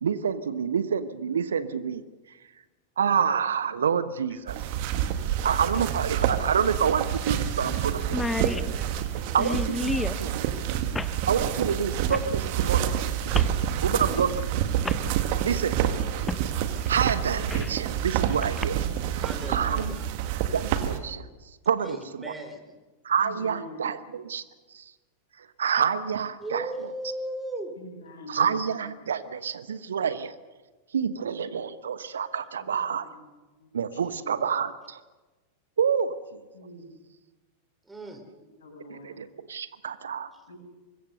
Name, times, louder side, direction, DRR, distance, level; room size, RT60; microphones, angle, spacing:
voice 1, 0.0-2.0 3.0-4.6 5.4-8.3 9.3-10.3 11.2-12.9 13.8-14.5 15.4-15.8 16.9-18.8 19.5-20.0 20.5-21.2 21.7-22.3 23.0-24.4 24.7-24.9 25.4-26.9 28.3-30.3 30.9-33.1 33.7-35.0 35.8-36.4 38.9-40.3, right 7 dB, 65° right, 14 dB, 1.1 m, -28 dB
sound 1, 4.3-4.4 6.2-6.3 6.6-6.7 7.3-7.5 7.7-7.8 8.0-10.2 10.9-11.2 12.1-12.3 13.3-13.6 14.4-14.5 14.8-15.0 16.3-16.5 16.9-17.8 18.4-18.6, left 3 dB, 10° left, 1.0 m, -32 dB
sound 2, 4.5-21.0, right 10 dB, 45° right, 1.9 m, -28 dB
voice 2, 13.9-14.3 19.1-20.1 21.8-22.8 26.4-27.7 37.9-38.2, right 1 dB, 10° right, 5 dB, 3.6 m, -37 dB
voice 3, 23.2-23.8 27.8-28.6 29.2-29.3 32.6-33.3 33.6-34.5 36.5-36.9 38.4-39.1 40.5-40.6, left 1 dB, 65° left, 2 dB, 7.0 m, -45 dB
25.0 x 21.5 x 6.7 m, 1.2 s
figure-of-eight pair, 90°, 0 cm